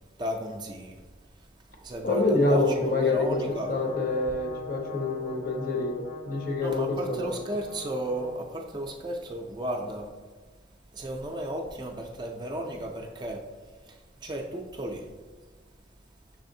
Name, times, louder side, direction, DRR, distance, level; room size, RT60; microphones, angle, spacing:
voice 1, 0.2-1.0 1.8-2.6 2.9-3.7 6.6-10.1 10.9-13.4 13.8-15.1, right 1 dB, 25° right, 2 dB, 0.3 m, -34 dB
voice 2, 2.0-3.4 3.7-7.3, left 2 dB, 50° left, 2 dB, 0.7 m, -26 dB
Brass instrument, 3.3-8.5, left 4 dB, 85° left, 0.7 m, -42 dB
6.1 x 3.2 x 2.7 m, 1.4 s
head